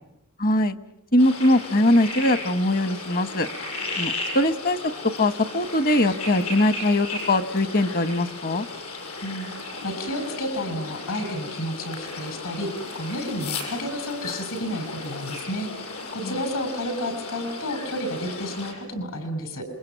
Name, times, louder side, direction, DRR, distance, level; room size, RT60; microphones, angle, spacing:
voice 1, 0.4-0.8 1.1-3.5 4.0-4.8 5.2-8.7 16.2-16.3, left 1 dB, 45° left, 12 dB, 1.2 m, -21 dB
sound 1, 1.2-18.7, left 3 dB, 90° left, 6.9 m, -35 dB
voice 2, 9.2-15.9 16.1-19.7, equal, 70° left, 9 dB, 6.2 m, -31 dB
28.0 x 23.0 x 9.1 m, 0.87 s
head